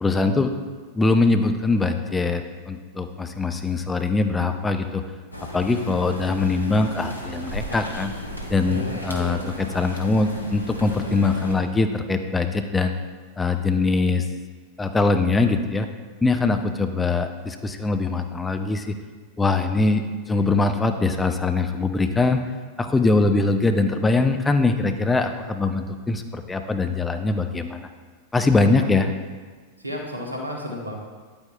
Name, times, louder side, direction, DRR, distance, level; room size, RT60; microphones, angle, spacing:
voice 1, 0.0-0.5 0.9-5.0 5.5-8.1 8.5-12.9 13.4-14.2 14.8-15.9 16.2-19.0 19.4-22.4 22.8-27.9 28.3-29.1, left 3 dB, 10° left, 7 dB, 0.5 m, -22 dB
sound 1, 5.3-11.6, equal, 85° left, 1.0 m, -35 dB
voice 2, 8.7-9.5 28.5-28.8 29.8-31.0, equal, 85° right, 1 dB, 1.2 m, -33 dB
9.7 x 8.6 x 2.3 m, 1.4 s
figure-of-eight pair, 90°, 0 cm